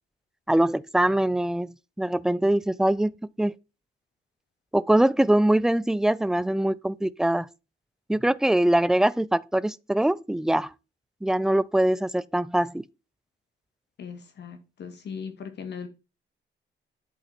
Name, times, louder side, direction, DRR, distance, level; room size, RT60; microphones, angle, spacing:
voice 1, 0.5-3.5 4.7-7.5 8.1-10.7 11.2-12.8, right 1 dB, 5° right, 0.3 m, -23 dB
voice 2, 14.0-15.9, left 6 dB, 60° left, 1.9 m, -38 dB
10.5 x 4.2 x 4.2 m
cardioid pair, 90°, 20 cm